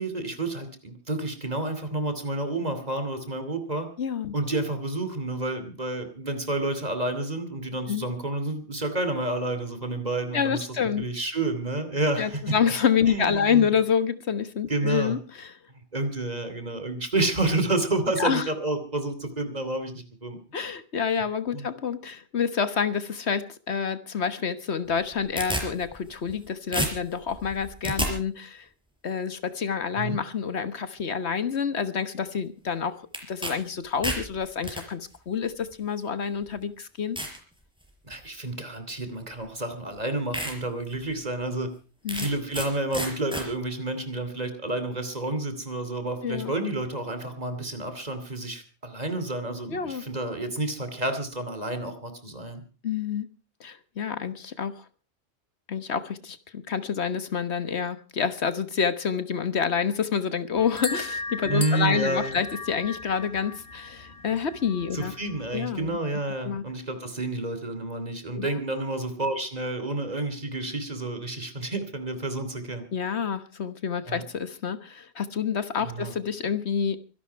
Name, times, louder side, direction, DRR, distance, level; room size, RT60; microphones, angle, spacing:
voice 1, 0.0-3.9 4.3-10.7 11.0-12.6 13.1-13.7 14.7-15.2 15.7-20.4 21.5-21.7 30.0-30.2 38.0-41.7 42.1-52.6 61.5-62.4 64.9-72.9 74.1-74.2 75.8-76.1, right 2 dB, 35° right, 2.8 m, -30 dB
voice 2, 4.0-4.3 7.9-8.1 10.3-11.0 12.2-15.5 18.2-18.5 20.5-28.7 29.0-33.0 33.3-37.2 42.0-42.3 46.2-46.5 49.7-50.0 52.8-53.3 53.6-54.8 55.7-65.1 65.5-66.0 66.4-66.6 68.3-68.5 72.9-77.0, left 7 dB, 75° left, 1.5 m, -28 dB
sound 1, 24.9-26.4 26.7-28.1 33.1-33.5 33.8-34.8 35.7-35.8 36.4-36.5 37.2-37.4 37.9-38.2 39.4-39.5 39.9-40.0 40.3-40.5 41.0-41.1 42.1-42.7 42.9-43.4, equal, 5° right, 4.8 m, -31 dB
sound 2, 60.6-65.6, left 3 dB, 55° left, 2.0 m, -37 dB
24.5 x 11.5 x 4.6 m
omnidirectional pair, 1.1 m